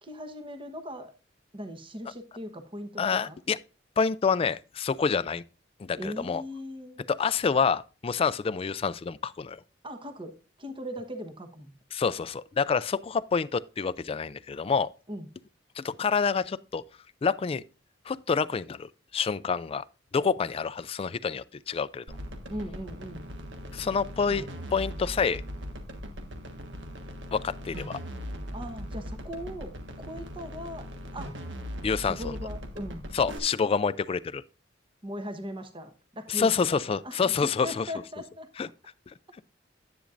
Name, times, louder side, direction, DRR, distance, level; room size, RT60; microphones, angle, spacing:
voice 1, 0.0-1.1 1.5-3.4 6.0-7.1 9.8-11.8 15.1-15.3 22.5-23.2 28.5-31.3 32.0-33.0 35.0-38.7, equal, 30° right, 1.1 m, -39 dB
voice 2, 3.0-3.6 4.0-5.4 5.8-6.4 7.1-9.6 11.9-14.9 15.8-16.8 17.2-17.6 18.1-19.8 20.1-22.0 23.7-25.4 27.3-28.0 31.8-32.2 33.1-34.4 36.3-37.9 38.6-38.7 39.1-39.2, left 5 dB, 30° left, 0.3 m, -27 dB
sound 1, 22.1-33.4, equal, 75° right, 1.5 m, -39 dB
10.0 x 8.8 x 2.5 m
head